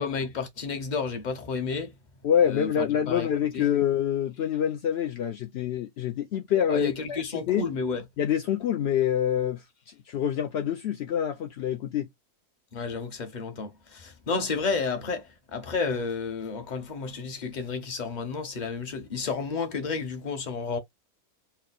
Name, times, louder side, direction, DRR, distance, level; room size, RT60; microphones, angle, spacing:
voice 1, 0.0-1.9 2.4-3.3 3.5-3.7 6.7-8.0 12.7-20.8, left 4 dB, 35° left, 0.8 m, -31 dB
voice 2, 2.2-7.2 7.5-7.7 8.2-12.1, left 9 dB, 70° left, 0.6 m, -26 dB
4.3 x 2.0 x 3.9 m
omnidirectional pair, 1.7 m